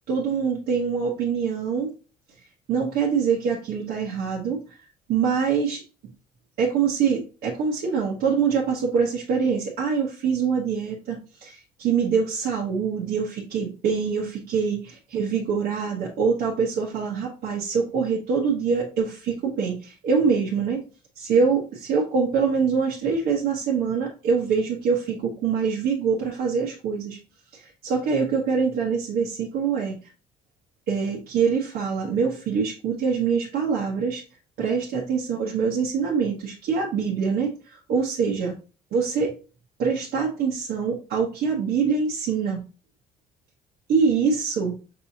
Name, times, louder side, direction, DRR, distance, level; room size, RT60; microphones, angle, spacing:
voice 1, 0.1-1.9 2.7-4.6 5.1-5.8 6.6-20.8 21.2-27.2 27.5-30.0 30.9-34.2 34.6-38.5 38.9-39.3 39.8-42.6 43.9-44.8, right 6 dB, 75° right, -3 dB, 1.1 m, -24 dB
5.4 x 2.9 x 2.7 m, 0.34 s
cardioid pair, 110°, 17 cm